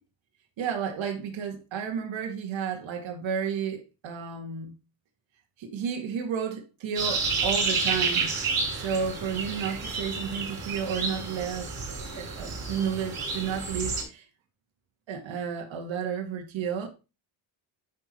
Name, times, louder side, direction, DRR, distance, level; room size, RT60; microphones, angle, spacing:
voice 1, 0.6-4.7 5.6-8.3 8.7-11.7 12.1-14.3 15.1-16.9, right 7 dB, 70° right, 1.9 m, -32 dB
sound 1, 7.0-14.0, right 4 dB, 45° right, 5.6 m, -30 dB
10.5 x 4.6 x 4.2 m
cardioid pair, 125°, 48 cm